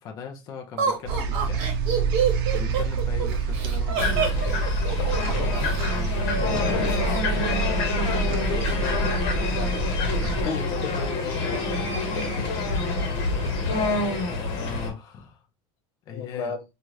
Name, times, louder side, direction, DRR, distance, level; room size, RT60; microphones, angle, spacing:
voice 1, 0.0-1.8 2.5-4.4 5.3-7.5 8.0-11.6 14.2-15.4 16.1-16.5, left 7 dB, 30° left, 0.5 m, -38 dB
Laughter, 0.8-5.8 6.9-7.7 8.0-8.1 8.5-8.9, right 6 dB, 45° right, 1.0 m, -28 dB
sound 1, 1.1-10.4, right 4 dB, 65° right, 0.5 m, -27 dB
sound 2, 4.0-14.9, left 3 dB, 60° left, 1.1 m, -27 dB
voice 2, 5.0-5.5 10.4-10.9 12.1-12.5 13.4-13.7 14.2-14.3 16.1-16.6, left 5 dB, 90° left, 0.6 m, -34 dB
2.7 x 2.4 x 3.1 m
cardioid pair, 175°, 13 cm